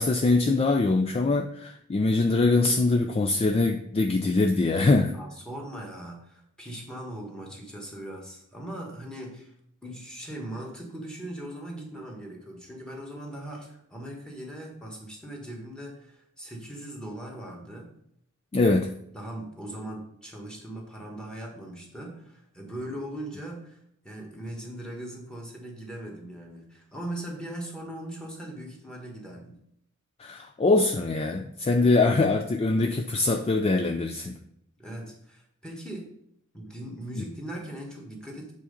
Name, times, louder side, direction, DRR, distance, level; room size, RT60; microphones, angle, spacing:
voice 1, 0.0-5.1 18.5-18.9 30.2-34.4 37.2-37.3, left 3 dB, 30° left, 4 dB, 0.4 m, -23 dB
voice 2, 5.1-9.5 9.8-17.9 18.6-18.8 19.1-23.8 24.0-29.6 34.8-36.1 36.5-38.5, right 1 dB, 5° left, -1 dB, 1.5 m, -39 dB
7.5 x 3.8 x 5.2 m, 0.72 s
head